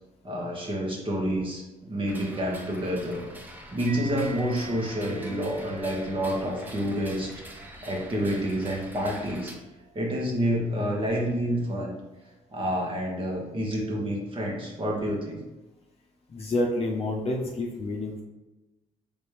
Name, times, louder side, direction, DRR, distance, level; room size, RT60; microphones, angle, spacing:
voice 1, 0.2-3.3 3.7-9.5 9.9-11.9 12.5-15.4, equal, 35° right, -2 dB, 1.3 m, -29 dB
sound 1, 2.1-9.6, equal, 10° right, 0.8 m, -45 dB
sound 2, 3.8-10.7, right 5 dB, 75° right, 0.8 m, -48 dB
voice 2, 16.3-18.2, left 2 dB, 40° left, -1 dB, 0.7 m, -28 dB
4.0 x 3.5 x 3.3 m, 1.0 s
supercardioid pair, 70°, 15 cm